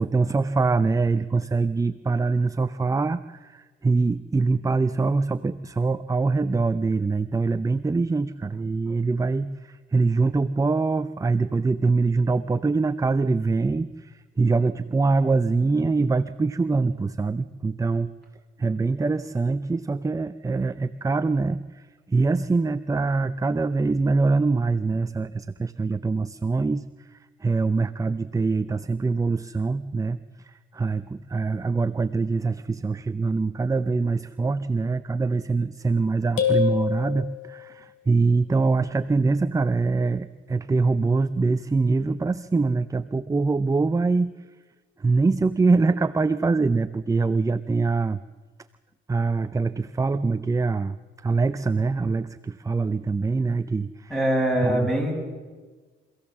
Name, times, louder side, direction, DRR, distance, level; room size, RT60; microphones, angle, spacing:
voice 1, 0.0-18.1 18.6-26.9 27.1-44.3 45.0-48.2 49.1-51.0 51.2-54.2 54.6-54.9, right 3 dB, 15° right, 12 dB, 0.6 m, -24 dB
sound 1, 36.4-37.9, left 8 dB, 80° left, 3.4 m, -26 dB
voice 2, 54.1-55.1, right 1 dB, ahead, 1 dB, 6.5 m, -22 dB
26.0 x 16.0 x 7.4 m, 1.4 s
cardioid pair, 90°, 20 cm